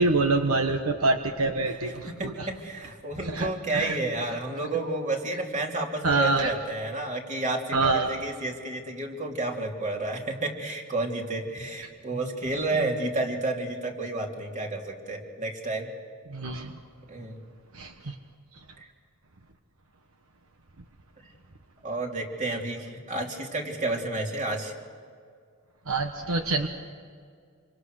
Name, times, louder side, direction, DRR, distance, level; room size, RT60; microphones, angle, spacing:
voice 1, 0.0-2.5 3.3-3.5 3.7-4.0 6.0-6.5 7.7-8.1 16.3-16.7 17.7-17.9 25.9-26.7, right 3 dB, 75° right, 5 dB, 1.3 m, -25 dB
voice 2, 2.1-15.9 17.1-17.4 18.0-18.1 18.8-18.9 21.2-21.3 21.8-24.7, right 2 dB, 35° right, 1 dB, 3.1 m, -31 dB
27.0 x 25.5 x 6.5 m, 2.1 s
head